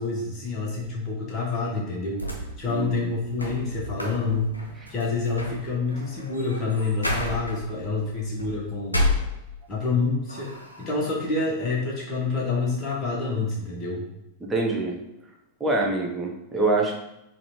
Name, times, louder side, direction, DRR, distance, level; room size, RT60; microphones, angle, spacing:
voice 1, 0.0-4.5 4.9-9.1 9.7-10.5 10.8-14.0, left 3 dB, 30° left, -4 dB, 0.8 m, -27 dB
sound 1, 2.1-9.9 10.3-11.1, left 1 dB, 85° left, 0.5 m, -32 dB
voice 2, 2.7-3.1 4.8-4.9 14.4-15.0 15.6-16.9, right 2 dB, 15° right, -1 dB, 0.7 m, -25 dB
3.7 x 2.2 x 2.9 m, 0.88 s
figure-of-eight pair, 90°, 0 cm